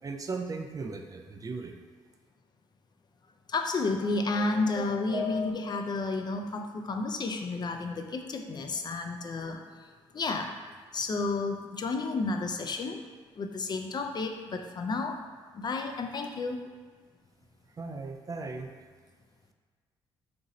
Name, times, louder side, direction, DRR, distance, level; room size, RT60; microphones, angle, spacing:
voice 1, 0.0-1.8 17.7-18.7, right 4 dB, 30° right, 4 dB, 0.3 m, -37 dB
voice 2, 3.5-10.6 10.9-13.0 13.4-15.2 15.5-16.6, left 3 dB, 40° left, 4 dB, 0.4 m, -31 dB
sound 1, 4.0-6.0, left 2 dB, 90° right, 0.6 m, -38 dB
2.8 x 2.5 x 4.1 m, 1.5 s
supercardioid pair, 55°, 11 cm